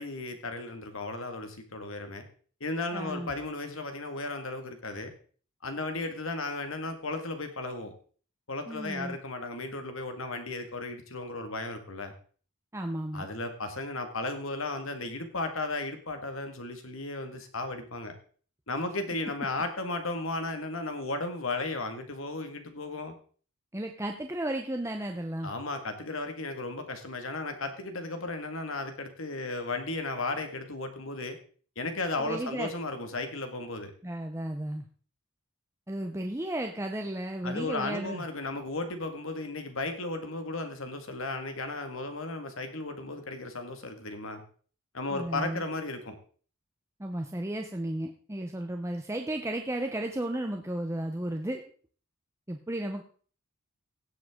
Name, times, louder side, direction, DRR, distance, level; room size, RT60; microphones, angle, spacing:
voice 1, 0.0-2.3 2.6-5.1 5.6-7.9 8.5-12.1 13.1-18.1 18.7-23.2 25.4-31.4 31.8-33.9 37.4-44.4 44.9-46.2, left 2 dB, 65° left, 7 dB, 1.9 m, -35 dB
voice 2, 2.9-3.3 8.7-9.2 12.7-13.3 23.7-25.5 32.2-32.7 34.0-34.8 35.9-38.2 45.1-45.6 47.0-51.6 52.5-53.0, right 1 dB, 15° right, 4 dB, 0.7 m, -34 dB
16.5 x 7.8 x 3.7 m, 0.43 s
head